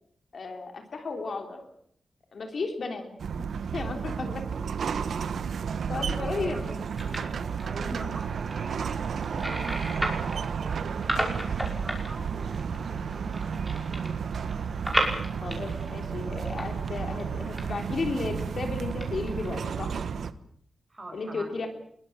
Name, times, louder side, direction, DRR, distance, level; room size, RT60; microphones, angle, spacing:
voice 1, 0.3-1.7 2.3-3.1 3.7-4.5 5.9-6.7 15.4-20.0 21.1-21.7, left 3 dB, 50° left, 5 dB, 3.4 m, -34 dB
sound 1, 3.2-20.3, right 6 dB, 80° right, 1.3 m, -32 dB
voice 2, 5.9-6.8 7.6-10.0 10.6-14.5 20.9-21.7, right 2 dB, 25° right, 5 dB, 6.3 m, -43 dB
sound 2, 6.5-19.7, equal, ahead, 5.6 m, -36 dB
24.0 x 22.5 x 7.4 m, 0.66 s
wide cardioid pair, 160°, 0 cm